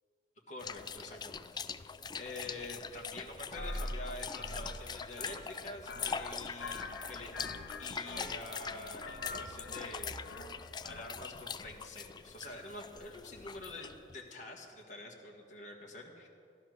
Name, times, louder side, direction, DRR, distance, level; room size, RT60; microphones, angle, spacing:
voice 1, 0.5-1.6 2.2-7.3 7.8-10.2 10.8-16.3, left 2 dB, 45° left, -1 dB, 1.7 m, -47 dB
sound 1, 0.6-14.2, left 6 dB, 25° left, 0.3 m, -43 dB
sound 2, 3.6-11.3, left 2 dB, 65° left, 1.1 m, -44 dB
13.5 x 11.5 x 6.4 m, 2.5 s
head